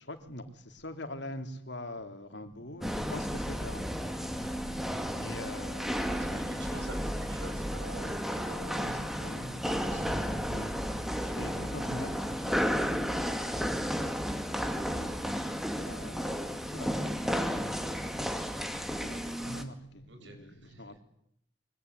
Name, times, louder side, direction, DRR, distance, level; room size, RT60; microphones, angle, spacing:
voice 1, 0.0-6.2 6.6-6.7 8.6-10.0 10.4-18.1 18.7-21.0, left 1 dB, 65° left, 3.4 m, -45 dB
sound 1, 2.8-19.6, equal, ahead, 2.4 m, -33 dB
voice 2, 5.8-8.8 9.7-10.2 20.1-20.8, right 1 dB, 75° right, 7.1 m, -47 dB
24.5 x 24.5 x 9.8 m
head